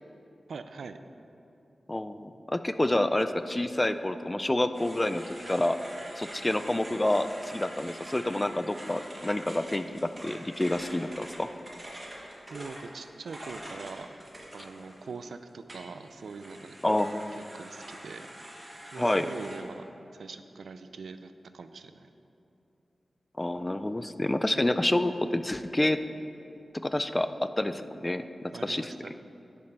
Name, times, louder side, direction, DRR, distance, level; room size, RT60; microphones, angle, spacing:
voice 1, 0.5-1.0 12.5-14.1 14.5-16.8 17.5-18.3 18.9-19.9 20.1-22.1 28.5-29.1, right 4 dB, 90° right, 10 dB, 0.4 m, -42 dB
voice 2, 1.9-5.8 6.2-11.5 16.8-17.4 19.0-19.3 23.4-26.0 26.8-27.3 27.6-28.9, left 1 dB, 15° left, 11 dB, 0.3 m, -28 dB
sound 1, 4.7-15.2 15.7-19.6, right 1 dB, 25° right, 1.4 m, -45 dB
10.5 x 7.4 x 4.5 m, 2.8 s
wide cardioid pair, 145°, 0 cm